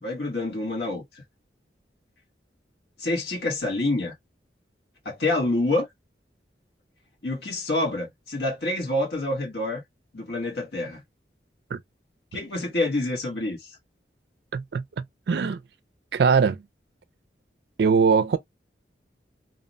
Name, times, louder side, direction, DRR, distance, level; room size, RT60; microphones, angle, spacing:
voice 1, 0.0-1.2 3.0-4.1 5.0-5.9 7.2-9.8 10.1-11.0 12.3-13.8, left 2 dB, 70° left, 1.2 m, -27 dB
voice 2, 14.5-15.6 16.1-16.6 17.8-18.4, right 5 dB, 65° right, 0.4 m, -22 dB
2.7 x 2.1 x 2.5 m
head